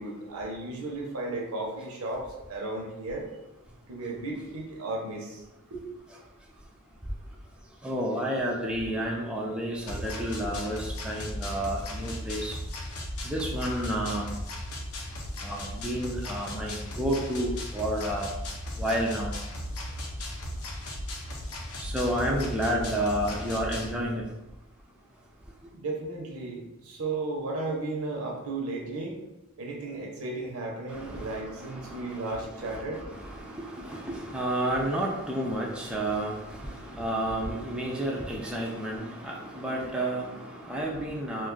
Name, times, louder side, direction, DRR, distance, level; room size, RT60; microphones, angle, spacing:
voice 1, 0.0-3.3 3.9-5.4 5.7-5.8 25.7-29.2 29.6-33.0, right 2 dB, 80° right, 0 dB, 0.7 m, -34 dB
voice 2, 7.8-12.6 13.2-14.3 15.4-18.3 18.8-19.3 21.8-24.2 30.9-41.5, right 1 dB, 5° right, -3 dB, 0.4 m, -31 dB
sound 1, 9.9-23.9, left 1 dB, 85° left, 0.6 m, -36 dB
2.5 x 2.3 x 3.8 m, 0.95 s
head